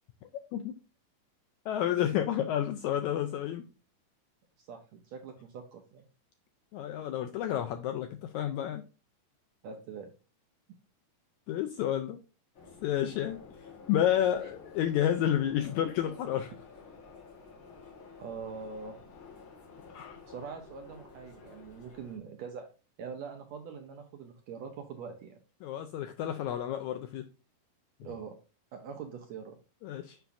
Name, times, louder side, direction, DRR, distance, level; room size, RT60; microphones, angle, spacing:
voice 1, 1.6-3.7 6.7-8.8 11.5-12.2 12.8-13.4 13.9-16.5 19.9-20.2 25.6-27.2 29.8-30.2, left 11 dB, 85° left, 7 dB, 1.7 m, -30 dB
voice 2, 4.6-6.0 9.6-10.1 18.2-19.0 20.3-22.7 23.0-25.4 28.0-28.3 28.7-29.6, right 6 dB, 80° right, 4 dB, 1.6 m, -43 dB
sound 1, 12.5-22.2, left 5 dB, 50° left, 1.9 m, -51 dB
6.9 x 5.8 x 2.5 m, 0.32 s
omnidirectional pair, 3.8 m